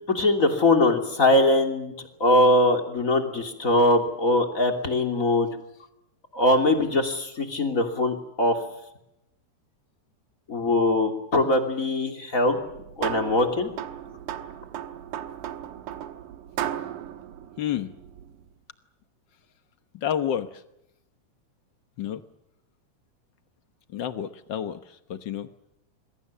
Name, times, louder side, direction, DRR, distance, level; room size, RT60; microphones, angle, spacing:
voice 1, 0.1-1.9 2.2-5.5 6.3-8.6 10.5-13.7, left 1 dB, 25° left, 4 dB, 3.0 m, -22 dB
sound 1, 12.6-18.4, right 11 dB, 90° right, 2.7 m, -36 dB
voice 2, 17.6-17.9 19.9-20.6 22.0-22.2 23.9-25.5, left 9 dB, 70° left, 10 dB, 1.0 m, -30 dB
27.0 x 22.0 x 7.3 m, 0.84 s
omnidirectional pair, 3.6 m